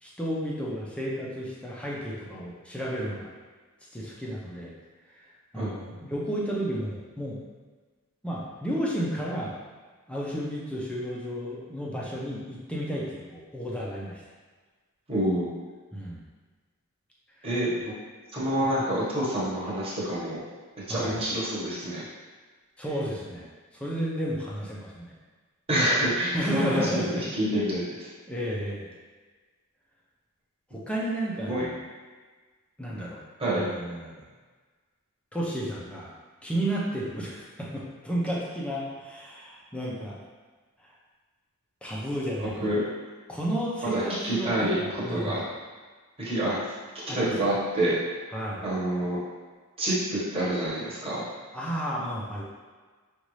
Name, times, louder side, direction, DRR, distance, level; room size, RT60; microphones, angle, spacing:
voice 1, 0.0-3.3 3.9-4.7 5.2-5.3 5.5-7.4 8.2-9.6 10.1-14.2 15.9-16.2 20.9-21.2 22.8-23.5 23.7-25.1 26.3-27.2 28.3-28.9 30.7-31.8 32.8-33.2 33.5-34.2 35.3-36.1 36.4-40.2 41.8-42.8 43.3-45.4 47.1-47.5 48.3-48.6 51.5-52.4, equal, 5° left, -5 dB, 0.7 m, -32 dB
voice 2, 15.1-15.5 17.4-17.9 18.3-20.4 20.9-22.0 25.7-28.1 31.5-31.6 33.4-33.6 42.6-42.8 43.8-45.4 46.2-46.6 47.1-48.0 48.6-49.2 49.8-51.2, right 1 dB, 25° right, -8 dB, 1.2 m, -27 dB
5.3 x 2.5 x 3.2 m, 1.4 s
head